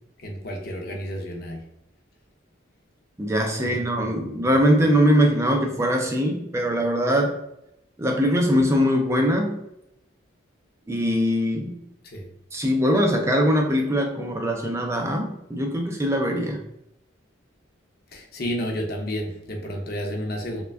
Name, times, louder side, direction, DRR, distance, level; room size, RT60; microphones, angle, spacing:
voice 1, 0.2-1.7 3.6-4.3 12.0-12.3 18.1-20.6, equal, 50° left, 2 dB, 0.7 m, -31 dB
voice 2, 3.2-7.4 8.0-9.6 10.9-11.8 12.5-16.6, equal, 15° right, 2 dB, 0.4 m, -22 dB
3.3 x 2.2 x 3.4 m, 0.83 s
head